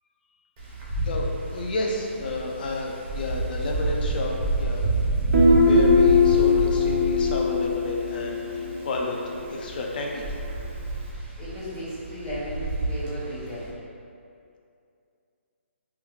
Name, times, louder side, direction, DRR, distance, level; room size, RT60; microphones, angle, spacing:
Wind, 0.6-13.7, right 2 dB, 20° right, 0.5 m, -29 dB
voice 1, 1.0-4.8 5.4-10.2, left 2 dB, 45° left, 0 dB, 0.4 m, -31 dB
Guitar, 5.3-9.0, left 3 dB, 70° right, 0.5 m, -20 dB
voice 2, 11.4-13.7, equal, 10° left, -14 dB, 1.1 m, -35 dB
3.4 x 2.3 x 3.0 m, 2.5 s
hypercardioid pair, 160°, 7 cm